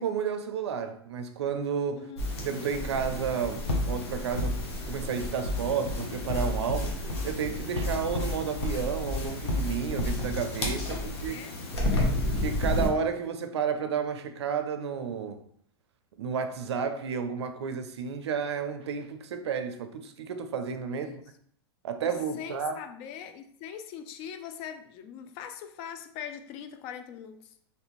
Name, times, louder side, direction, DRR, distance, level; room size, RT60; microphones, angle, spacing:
voice 1, 0.0-2.1 2.4-11.4 12.4-15.4 16.2-21.2 21.8-22.8, right 6 dB, 90° right, 0.4 m, -32 dB
voice 2, 2.0-2.3 11.0-11.6 20.9-21.3 22.0-27.4, left 8 dB, 45° left, 0.4 m, -42 dB
sound 1, 2.2-12.9, left 1 dB, 85° left, 0.9 m, -31 dB
3.2 x 2.5 x 3.0 m
hypercardioid pair, 115°, 14 cm